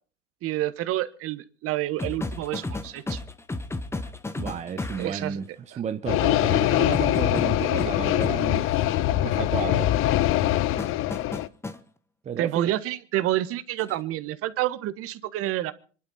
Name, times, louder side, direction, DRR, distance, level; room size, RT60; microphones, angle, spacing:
voice 1, 0.4-3.2 5.0-5.4 5.7-5.8 6.7-6.8 12.4-15.7, right 14 dB, 40° right, 1.4 m, -28 dB
sound 1, 2.0-5.2 6.9-8.4 10.8-11.8 13.8-14.0, left 2 dB, 5° left, 1.1 m, -33 dB
voice 2, 4.4-8.9 9.2-9.9 12.2-12.7, right 8 dB, 20° right, 0.8 m, -33 dB
sound 2, 6.1-11.5, left 14 dB, 35° left, 0.8 m, -23 dB
25.5 x 11.5 x 4.2 m
hypercardioid pair, 105°, 36 cm